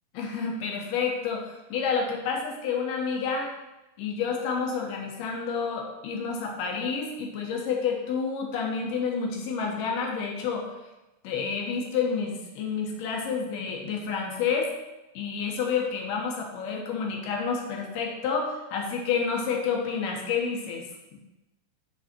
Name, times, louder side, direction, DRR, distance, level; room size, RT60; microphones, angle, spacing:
voice 1, 0.1-3.5 4.0-10.7 11.2-14.7 15.1-20.8, left 5 dB, 70° left, 0 dB, 2.7 m, -29 dB
12.0 x 4.1 x 4.4 m, 1.0 s
omnidirectional pair, 5.2 m